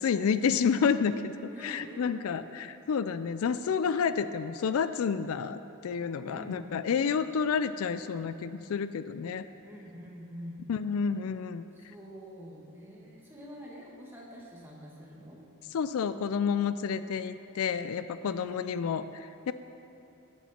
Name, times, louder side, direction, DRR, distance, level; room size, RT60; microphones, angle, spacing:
voice 1, 0.0-1.3 1.6-9.4 10.7-11.6 15.7-19.5, left 6 dB, 70° left, 12 dB, 0.4 m, -30 dB
voice 2, 1.5-2.5 6.3-6.7 9.6-10.7 11.7-15.4 18.2-19.2, equal, 10° right, -4 dB, 1.8 m, -46 dB
17.0 x 7.3 x 4.3 m, 2.8 s
head